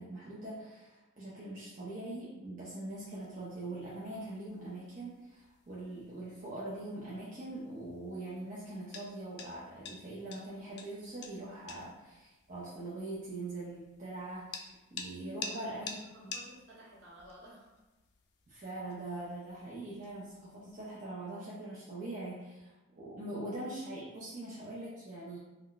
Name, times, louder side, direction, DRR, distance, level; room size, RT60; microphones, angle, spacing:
voice 1, 0.0-16.0 18.5-25.4, right 2 dB, 40° right, -8 dB, 0.5 m, -42 dB
sound 1, 2.7-21.0, left 5 dB, 55° left, 0.3 m, -51 dB
voice 2, 15.3-15.7 16.1-17.7, equal, 65° right, -7 dB, 1.1 m, -55 dB
2.3 x 2.1 x 3.7 m, 1.1 s
head